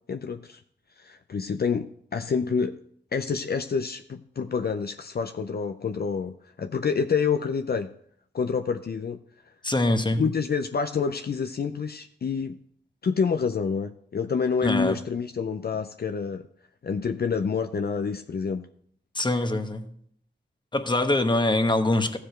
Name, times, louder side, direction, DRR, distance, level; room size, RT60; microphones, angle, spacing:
voice 1, 0.1-0.6 1.0-2.8 3.1-7.9 8.3-9.2 9.5-9.6 10.2-12.6 13.0-16.5 16.8-18.7, left 5 dB, 60° left, 7 dB, 0.5 m, -28 dB
voice 2, 9.6-10.2 14.6-15.0 19.1-19.9 20.7-22.2, left 2 dB, 25° left, 7 dB, 1.0 m, -24 dB
14.5 x 5.0 x 4.4 m, 0.65 s
wide cardioid pair, 65°, 19 cm